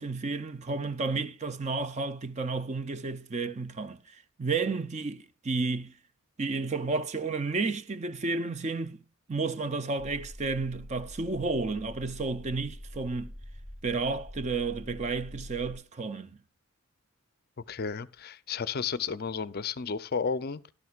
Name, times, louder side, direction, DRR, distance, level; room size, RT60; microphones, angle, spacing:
voice 1, 0.0-5.9 6.4-9.0 9.3-13.3 13.8-16.4, right 3 dB, 30° right, 0.5 m, -32 dB
sound 1, 10.0-15.8, equal, 5° left, 4.7 m, -45 dB
voice 2, 17.7-20.6, left 5 dB, 45° left, 0.5 m, -32 dB
14.0 x 12.0 x 2.4 m
head